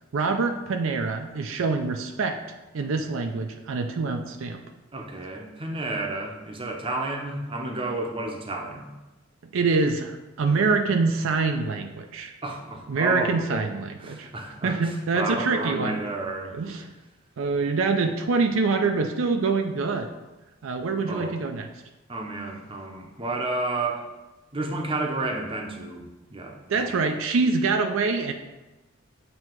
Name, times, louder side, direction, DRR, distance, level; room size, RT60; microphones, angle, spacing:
voice 1, 0.1-2.4 2.7-4.6 9.5-12.3 12.9-14.3 14.6-16.0 16.5-16.9 17.4-20.1 20.6-21.7 26.7-28.3, right 4 dB, 70° right, 5 dB, 0.4 m, -25 dB
voice 2, 4.9-8.9 12.4-13.6 14.0-16.6 21.1-21.4 22.1-24.0 24.5-26.0 26.3-26.6 26.9-27.0, right 2 dB, 25° right, 2 dB, 0.7 m, -31 dB
7.7 x 2.8 x 4.5 m, 1.1 s
head